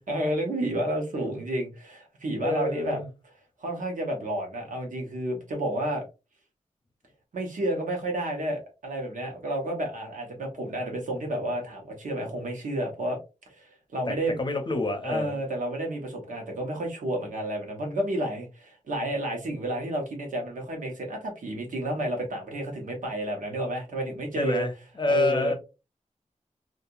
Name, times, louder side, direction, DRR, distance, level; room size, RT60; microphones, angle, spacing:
voice 1, 0.0-3.0 3.6-6.0 7.3-13.2 13.5-14.4 15.0-24.7 25.1-25.5, right 1 dB, 90° right, 1.0 m, -31 dB
voice 2, 2.4-3.1 14.1-15.4 24.4-25.5, left 2 dB, 35° left, 0.7 m, -28 dB
2.8 x 2.5 x 2.4 m
wide cardioid pair, 90°, 13 cm